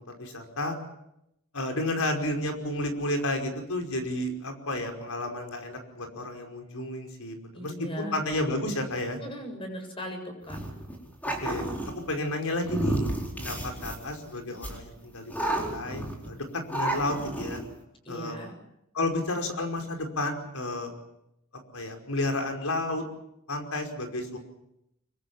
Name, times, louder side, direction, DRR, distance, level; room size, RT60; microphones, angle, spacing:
voice 1, 0.2-0.8 1.5-7.7 8.0-9.2 11.4-17.6 18.1-18.4 18.9-20.9 21.7-23.0 23.5-24.4, left 1 dB, 85° left, 4 dB, 5.3 m, -31 dB
voice 2, 7.5-8.3 9.2-10.6 18.0-18.5, left 1 dB, 25° left, 4 dB, 7.5 m, -38 dB
sound 1, 10.5-11.9 12.6-14.2 14.6-14.8 15.3-16.3 16.7-17.6, right 1 dB, 10° left, 4.4 m, -31 dB
25.0 x 23.5 x 7.3 m, 0.81 s
head